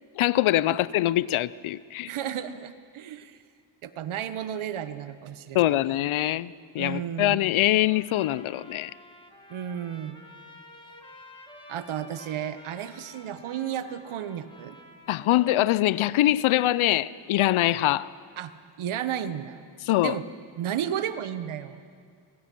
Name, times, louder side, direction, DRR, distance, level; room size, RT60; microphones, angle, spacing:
voice 1, 0.2-2.1 5.5-8.9 15.1-18.1 19.9-20.1, left 15 dB, 80° left, 20 dB, 0.7 m, -23 dB
voice 2, 2.1-3.4 3.8-5.9 6.8-7.4 9.5-10.2 11.7-14.8 18.4-18.5 18.8-19.6 20.0-20.2 20.6-21.8, right 9 dB, 80° right, 12 dB, 1.2 m, -33 dB
Trumpet, 7.6-16.2, left 1 dB, 10° left, 2.9 m, -50 dB
25.5 x 21.5 x 6.2 m, 2.1 s
cardioid pair, 85°, 48 cm